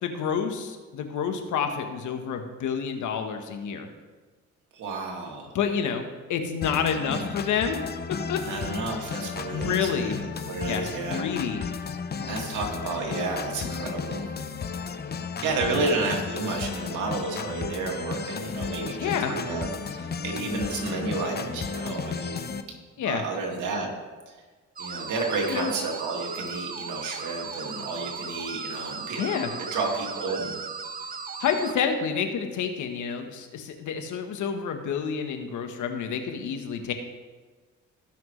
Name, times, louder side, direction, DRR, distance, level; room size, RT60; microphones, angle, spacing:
voice 1, 0.0-3.9 5.5-7.8 8.3-8.4 9.5-10.2 10.7-11.6 15.7-15.9 19.0-19.3 23.0-23.2 25.5-25.7 29.2-29.5 31.4-36.9, left 7 dB, 80° left, 6 dB, 1.2 m, -29 dB
voice 2, 4.7-5.5 7.0-7.3 8.5-10.2 10.5-11.3 11.6-11.7 12.2-14.3 15.4-22.5 23.0-23.9 24.3-24.4 24.8-29.2 29.6-30.5, right 3 dB, 80° right, 0 dB, 2.2 m, -31 dB
sound 1, 6.6-22.6, left 5 dB, 35° left, 0.7 m, -34 dB
sound 2, 24.8-31.7, right 5 dB, 30° right, 0.7 m, -37 dB
17.5 x 6.0 x 3.2 m, 1.4 s
cardioid pair, 90°, 30 cm